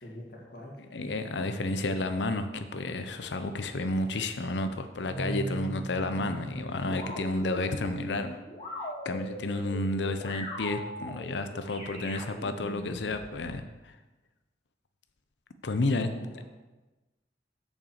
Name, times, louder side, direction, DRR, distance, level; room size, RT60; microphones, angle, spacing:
voice 1, 0.0-0.8 15.9-16.4, left 1 dB, 55° left, -2 dB, 2.1 m, -43 dB
voice 2, 0.9-8.4 9.0-13.9 15.6-16.1, left 2 dB, 80° left, 9 dB, 0.7 m, -31 dB
sound 1, 5.0-13.6, equal, 30° left, 2.2 m, -40 dB
6.7 x 5.8 x 7.2 m, 1.1 s
head